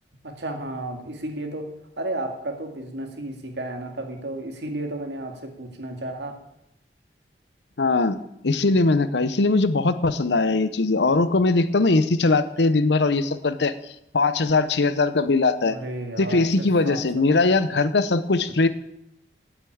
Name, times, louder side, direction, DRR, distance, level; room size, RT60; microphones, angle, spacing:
voice 1, 0.2-1.7 2.0-6.3 15.7-17.2, right 1 dB, 85° right, 4 dB, 2.0 m, -33 dB
voice 2, 7.8-13.8 14.1-15.8 16.2-18.7, left 3 dB, 80° left, 13 dB, 0.8 m, -21 dB
9.0 x 8.2 x 8.6 m, 0.81 s
head